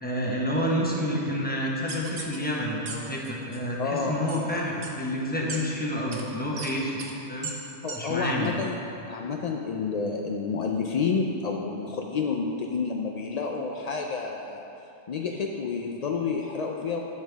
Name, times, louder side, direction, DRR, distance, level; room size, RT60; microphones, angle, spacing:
voice 1, 0.0-7.0 7.3-7.5 7.9-8.5, equal, 10° left, -3 dB, 0.9 m, -29 dB
sound 1, 1.9-2.4 2.9-3.0 3.2-3.6 4.3-4.4 4.8-4.9 5.5-5.6 6.1-6.2 6.6-6.7 7.0-7.1 7.4-7.5 7.9-8.0 8.4-8.5, right 5 dB, 55° right, 1.0 m, -36 dB
voice 2, 3.8-4.5 7.8-8.8 9.1-14.7 15.1-17.0, left 5 dB, 70° left, 1 dB, 0.3 m, -29 dB
10.5 x 6.6 x 3.5 m, 2.8 s
omnidirectional pair, 1.2 m